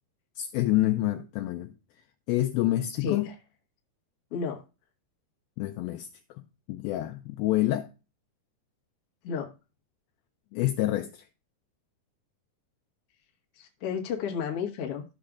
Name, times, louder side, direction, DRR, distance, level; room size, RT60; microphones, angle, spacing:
voice 1, 0.4-1.7 2.3-3.3 5.6-6.1 6.7-7.9 10.5-11.3, left 15 dB, 85° left, 2.2 m, -27 dB
voice 2, 3.0-3.3 4.3-4.6 9.2-9.5 13.6-15.0, left 6 dB, 65° left, 1.5 m, -32 dB
13.5 x 6.5 x 2.4 m
omnidirectional pair, 4.7 m